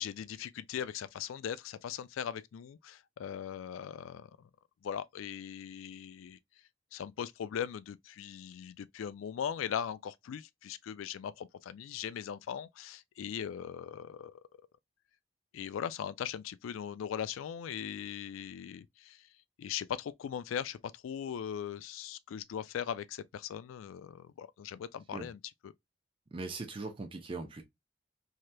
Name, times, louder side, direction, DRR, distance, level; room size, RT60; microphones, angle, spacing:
voice 1, 0.0-4.5 4.8-6.4 6.9-14.4 15.5-19.3 19.6-25.7, left 8 dB, 90° left, 0.3 m, -39 dB
voice 2, 26.3-27.6, right 3 dB, 25° right, 0.5 m, -40 dB
3.2 x 2.8 x 2.2 m
head